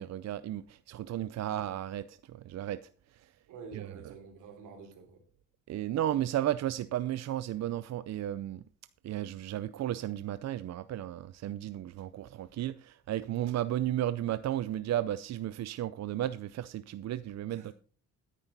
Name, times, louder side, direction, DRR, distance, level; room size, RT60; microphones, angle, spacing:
voice 1, 0.0-2.8 3.2-3.3 3.7-3.9 5.7-8.6 9.0-17.7, right 12 dB, 60° right, 0.6 m, -34 dB
voice 2, 3.5-5.2 17.5-17.7, right 5 dB, 85° right, 3.3 m, -48 dB
13.0 x 10.0 x 4.0 m
cardioid pair, 90°, 30 cm